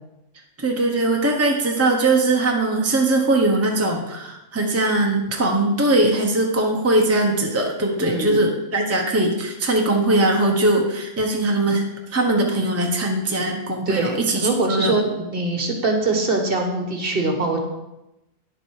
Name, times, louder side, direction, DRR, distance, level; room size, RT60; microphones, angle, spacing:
voice 1, 0.6-11.8 12.1-14.9, right 2 dB, 15° right, 1 dB, 1.0 m, -20 dB
voice 2, 8.0-8.4 13.9-17.6, right 3 dB, 50° right, 3 dB, 1.5 m, -23 dB
9.7 x 7.6 x 4.8 m, 0.93 s
omnidirectional pair, 1.3 m